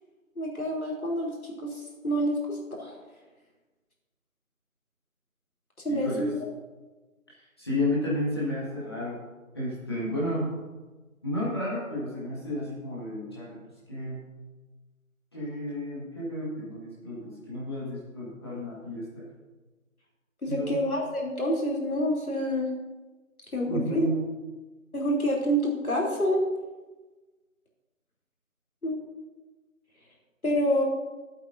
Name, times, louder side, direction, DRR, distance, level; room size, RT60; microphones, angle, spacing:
voice 1, 0.3-1.4 1.6-3.0 5.8-6.3 20.4-22.7 23.5-24.1 24.9-26.4 28.8-28.9 30.4-30.8, equal, 80° left, -2 dB, 3.3 m, -27 dB
voice 2, 5.9-6.3 7.4-9.2 9.5-10.5 11.2-13.6 13.9-14.2 15.3-19.3 20.5-20.7 23.7-24.2, left 1 dB, 20° left, -8 dB, 1.7 m, -32 dB
15.5 x 8.2 x 2.7 m, 1.2 s
figure-of-eight pair, 165°, 42 cm